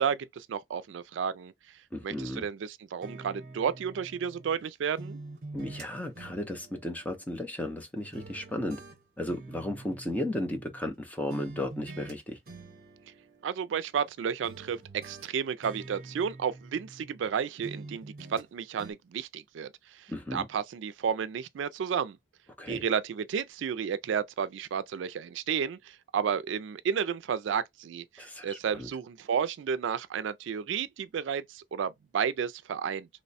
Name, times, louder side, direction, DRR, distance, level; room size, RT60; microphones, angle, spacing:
voice 1, 0.0-1.5 2.0-5.2 13.4-22.2 22.7-33.1, right 7 dB, 75° right, 0.3 m, -32 dB
voice 2, 1.9-2.4 5.5-8.8 9.2-12.4 20.1-20.5 22.6-22.8 28.2-28.9, left 1 dB, 10° left, 0.6 m, -35 dB
sound 1, 3.0-4.6 5.0-7.8 8.1-11.0 11.3-12.2 12.5-14.1 14.4-17.3 17.6-18.5 18.8-18.9, right 2 dB, 50° right, 0.7 m, -46 dB
3.0 x 2.1 x 4.0 m
head